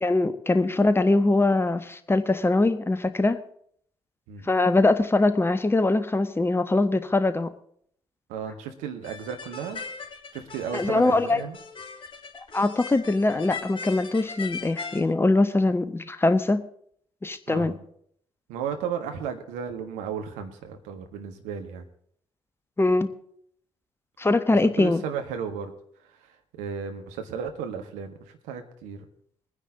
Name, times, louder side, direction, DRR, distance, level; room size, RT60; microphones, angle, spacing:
voice 1, 0.0-3.4 4.5-7.5 10.7-11.4 12.5-16.6 17.2-17.7 22.8-23.1 24.2-25.0, left 2 dB, 15° left, 1.0 m, -22 dB
voice 2, 8.3-9.8 10.3-11.6 17.5-17.8 18.5-21.9 24.6-25.7 26.1-28.1 28.4-29.0, right 7 dB, 65° right, 1.4 m, -34 dB
sound 1, 9.0-15.0, left 4 dB, 40° left, 2.4 m, -39 dB
21.5 x 9.8 x 3.9 m
figure-of-eight pair, 40°, 13 cm